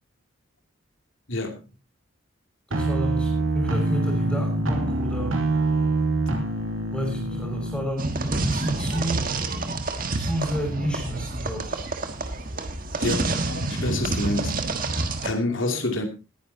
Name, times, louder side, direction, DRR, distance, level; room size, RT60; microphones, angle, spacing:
voice 1, 2.7-5.4 6.9-9.3 10.1-11.8 14.0-14.1, equal, 5° left, 5.6 m, -30 dB
sound 1, 2.7-7.9, right 2 dB, 85° right, 2.6 m, -25 dB
sound 2, 8.0-15.3, right 2 dB, 45° right, 1.6 m, -28 dB
voice 2, 13.0-14.6 15.2-16.1, left 2 dB, 75° left, 2.8 m, -28 dB
19.5 x 10.0 x 2.8 m
head